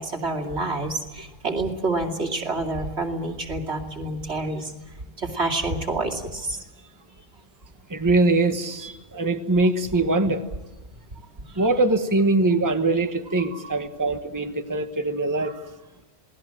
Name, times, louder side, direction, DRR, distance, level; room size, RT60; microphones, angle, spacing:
voice 1, 0.0-4.7 5.2-6.6 11.5-11.6 13.4-13.6 15.4-15.5, right 2 dB, 75° right, 2 dB, 3.0 m, -28 dB
voice 2, 7.9-10.4 11.6-15.5, right 2 dB, 20° right, 7 dB, 1.2 m, -22 dB
27.5 x 19.5 x 7.7 m, 1.1 s
omnidirectional pair, 1.1 m